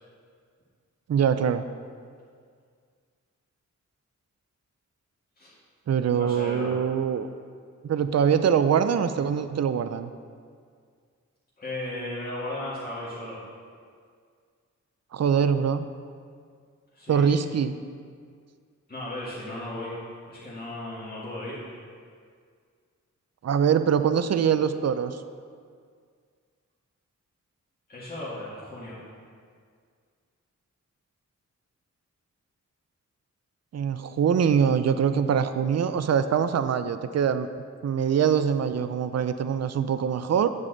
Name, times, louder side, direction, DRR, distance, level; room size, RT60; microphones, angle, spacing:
voice 1, 1.1-1.6 5.9-7.3 7.8-10.1 15.1-15.9 17.1-17.8 23.4-25.2 33.7-37.5 37.8-40.5, right 7 dB, 60° right, 11 dB, 0.5 m, -23 dB
voice 2, 6.1-6.7 11.6-13.4 16.9-17.2 18.9-20.0 20.3-21.6 27.9-29.0, left 1 dB, 30° left, -10 dB, 2.0 m, -35 dB
9.1 x 8.1 x 3.9 m, 2.1 s
wide cardioid pair, 115°, 30 cm